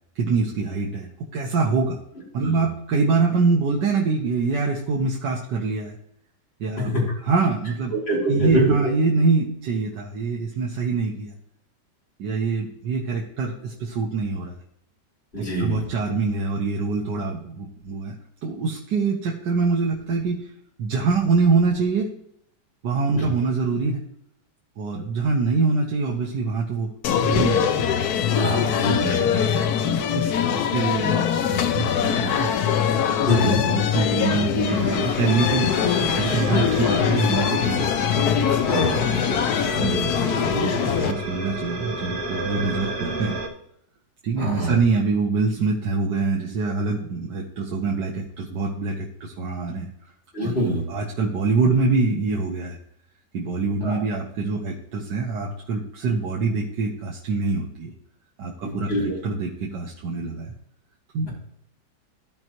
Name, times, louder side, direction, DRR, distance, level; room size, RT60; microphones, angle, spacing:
voice 1, 0.2-2.0 2.3-6.0 6.6-6.9 7.2-7.9 8.3-11.3 12.2-14.6 15.4-18.2 18.4-20.5 20.8-22.1 22.8-24.0 24.8-27.7 29.3-32.5 33.4-37.9 39.8-43.4 44.2-49.9 50.4-50.5 50.9-52.8 53.3-57.9 58.4-60.5 61.1-61.3, right 4 dB, 85° right, -2 dB, 1.8 m, -25 dB
voice 2, 8.1-8.8 15.3-15.8 23.1-23.3 28.3-29.3 33.3-33.6 38.7-39.1 40.5-40.8 44.4-44.7 50.3-50.8 53.8-54.0 58.6-59.2, equal, 35° left, -6 dB, 4.4 m, -24 dB
sound 1, 27.0-41.1, left 8 dB, 70° left, 1.1 m, -22 dB
sound 2, 34.6-43.5, right 2 dB, 70° right, 2.1 m, -32 dB
15.0 x 5.5 x 3.1 m, 0.73 s
omnidirectional pair, 1.8 m